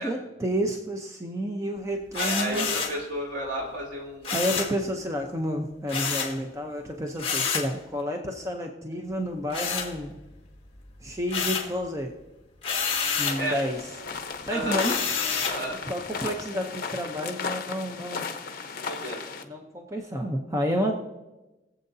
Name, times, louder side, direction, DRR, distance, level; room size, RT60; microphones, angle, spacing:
voice 1, 0.0-2.7 4.3-10.2 11.0-12.1 13.2-13.8 14.5-15.0 15.9-18.2 19.5-21.0, equal, 15° right, 2 dB, 0.7 m, -30 dB
sound 1, 2.1-3.0 4.2-4.8 5.9-6.4 7.2-7.7 9.5-10.4 10.8-11.8 12.6-13.4 14.7-15.6, left 6 dB, 30° left, 1.7 m, -28 dB
voice 2, 2.1-4.3 13.4-13.6 14.5-15.0 15.5-15.8 18.8-19.2, right 1 dB, 70° right, -3 dB, 3.8 m, -32 dB
sound 2, 13.2-19.4, left 5 dB, 50° left, 0.9 m, -35 dB
22.5 x 7.7 x 2.7 m, 1.0 s
head